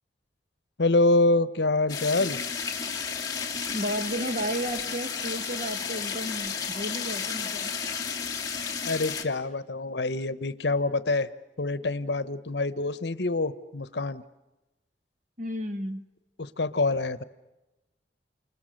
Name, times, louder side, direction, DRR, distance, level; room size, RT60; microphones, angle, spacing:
voice 1, 0.8-2.4 8.8-11.3 11.6-14.2 16.4-17.2, left 2 dB, 75° left, 15 dB, 1.1 m, -26 dB
sound 1, 1.9-9.2, left 6 dB, 20° left, 2.7 m, -32 dB
voice 2, 3.7-7.8 15.4-16.0, equal, 45° right, 8 dB, 1.8 m, -33 dB
29.0 x 28.5 x 6.6 m, 1.0 s
head